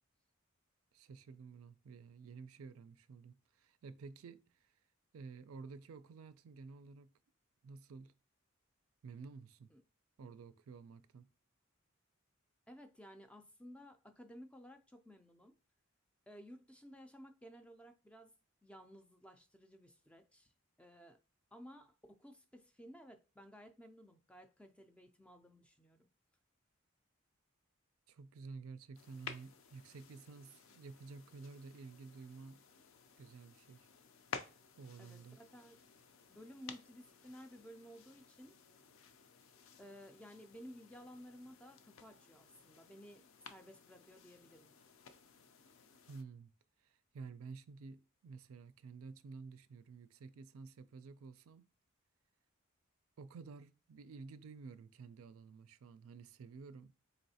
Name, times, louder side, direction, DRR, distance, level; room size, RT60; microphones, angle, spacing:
voice 1, 0.9-4.7 5.1-7.1 7.6-8.1 9.0-9.7 10.2-11.3 28.1-32.7 33.2-33.9 34.8-35.4 46.1-46.5 46.8-51.7 53.2-56.9, right 4 dB, 90° right, 0.4 m, -52 dB
voice 2, 12.7-15.6 16.3-18.3 18.6-21.2 21.5-26.1 35.0-35.8 36.3-38.6 39.8-44.7, equal, 5° left, 0.3 m, -56 dB
sound 1, 28.9-46.2, left 6 dB, 75° left, 0.5 m, -55 dB
4.1 x 3.0 x 2.7 m
head